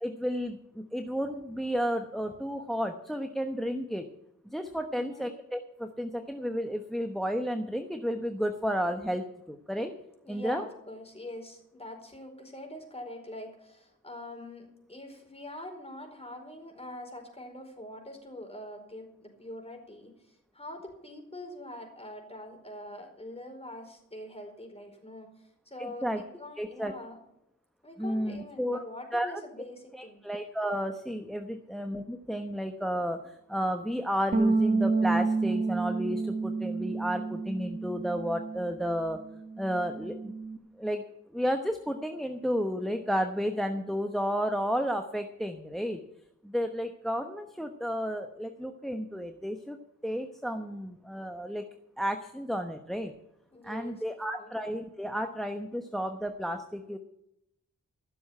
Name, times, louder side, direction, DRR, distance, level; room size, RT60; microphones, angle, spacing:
voice 1, 0.0-4.1 4.5-9.9 10.3-10.6 26.0-26.2 26.6-26.9 28.0-28.8 29.1-29.4 29.9-39.2 39.6-40.3 40.8-46.0 46.4-49.8 50.0-51.6 52.0-53.1 53.6-57.0, equal, ahead, 7 dB, 1.0 m, -32 dB
voice 2, 4.9-5.3 10.2-27.2 27.8-30.2 53.5-54.5, left 1 dB, 20° left, 3 dB, 4.6 m, -44 dB
sound 1, 34.3-38.9 39.2-40.6, right 3 dB, 25° right, 1.5 m, -29 dB
14.5 x 7.1 x 8.7 m, 0.81 s
cardioid pair, 65°, 32 cm